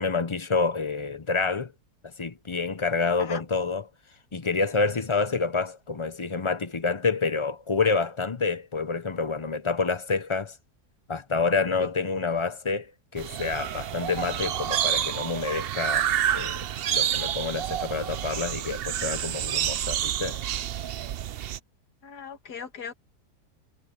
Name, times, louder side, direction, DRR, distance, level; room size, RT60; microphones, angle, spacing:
voice 1, 0.0-1.7 2.2-3.8 4.3-10.5 11.1-16.1 16.3-16.6 16.9-20.4, left 4 dB, 35° left, 0.5 m, -28 dB
sound 1, 13.2-21.6, right 10 dB, 70° right, 0.5 m, -29 dB
voice 2, 22.0-22.9, left 6 dB, 90° left, 2.2 m, -39 dB
omnidirectional pair, 1.7 m